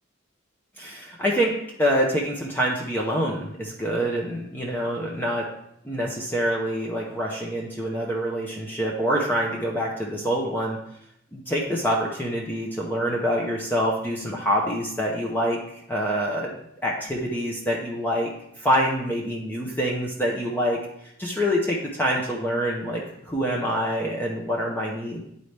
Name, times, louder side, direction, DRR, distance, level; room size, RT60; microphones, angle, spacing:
voice 1, 0.8-1.5 1.8-5.5 5.8-10.8 11.3-15.6 15.9-16.5 16.8-18.3 18.6-20.8 21.2-25.2, equal, 10° left, -2 dB, 0.7 m, -26 dB
9.5 x 4.1 x 3.3 m, 0.76 s
head